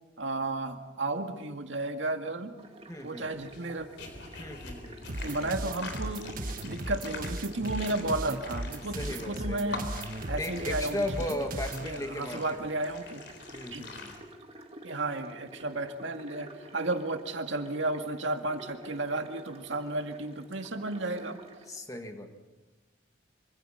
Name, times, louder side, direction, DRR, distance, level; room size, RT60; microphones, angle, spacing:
voice 1, 0.2-2.5 3.0-3.9 5.2-6.3 6.6-9.9 10.3-11.4 11.8-13.2 13.7-13.9 14.8-21.4, right 2 dB, 75° right, 5 dB, 2.1 m, -33 dB
sound 1, 2.6-21.7, right 1 dB, 30° right, 2.2 m, -50 dB
voice 2, 2.9-3.3 4.4-5.3 9.0-9.8 10.4-12.6 13.5-14.1 21.7-22.3, left 1 dB, 15° left, 5 dB, 1.9 m, -36 dB
sound 2, 3.3-14.2, left 3 dB, 65° left, 4.0 m, -45 dB
sound 3, 5.1-11.9, right 1 dB, 45° right, 1.4 m, -37 dB
25.5 x 25.0 x 5.7 m, 1.2 s
head